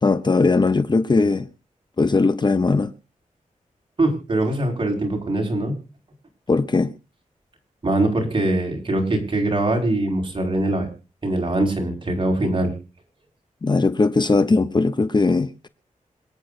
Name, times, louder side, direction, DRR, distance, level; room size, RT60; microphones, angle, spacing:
voice 1, 0.0-1.5 2.0-2.9 6.5-6.9 13.6-15.7, left 3 dB, 35° left, 0.8 m, -19 dB
voice 2, 4.0-5.8 7.8-10.9 11.2-12.7, right 1 dB, 40° right, 5.0 m, -22 dB
27.0 x 9.2 x 2.6 m
wide cardioid pair, 140°, 13 cm